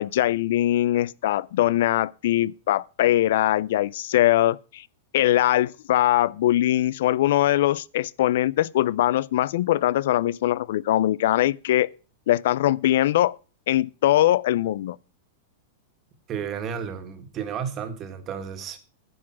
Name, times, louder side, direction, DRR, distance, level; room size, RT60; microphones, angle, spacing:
voice 1, 0.0-4.8 5.1-11.9 12.3-13.4 13.7-15.0, left 13 dB, 70° left, 0.4 m, -22 dB
voice 2, 16.3-18.8, right 7 dB, 30° right, 1.8 m, -32 dB
10.5 x 6.2 x 7.5 m
supercardioid pair, 145°, 0 cm